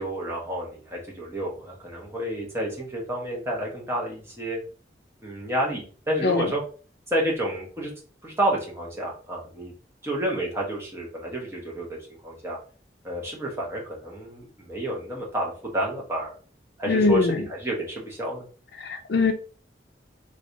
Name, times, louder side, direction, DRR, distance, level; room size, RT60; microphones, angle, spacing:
voice 1, 0.0-4.6 5.2-6.6 7.1-7.9 8.2-9.7 10.0-11.9 12.2-12.6 13.0-16.3 16.8-18.5, right 1 dB, 15° right, -3 dB, 1.0 m, -30 dB
voice 2, 16.9-17.4 18.8-19.3, left 3 dB, 65° left, 6 dB, 0.5 m, -22 dB
3.2 x 3.1 x 2.7 m, 0.39 s
head